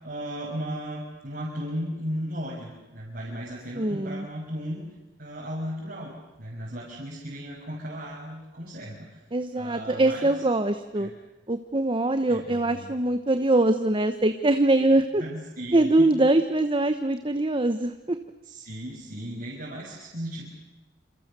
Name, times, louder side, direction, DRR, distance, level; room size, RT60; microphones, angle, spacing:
voice 1, 0.0-4.8 5.2-6.1 6.4-9.2 9.6-10.3 11.0-11.1 12.3-12.9 15.2-16.1 18.5-20.5, equal, 55° right, -5 dB, 6.1 m, -35 dB
voice 2, 3.7-4.3 9.3-11.1 11.5-15.2 15.7-18.2, right 2 dB, 30° right, 9 dB, 1.0 m, -23 dB
27.5 x 27.5 x 6.9 m, 1.0 s
head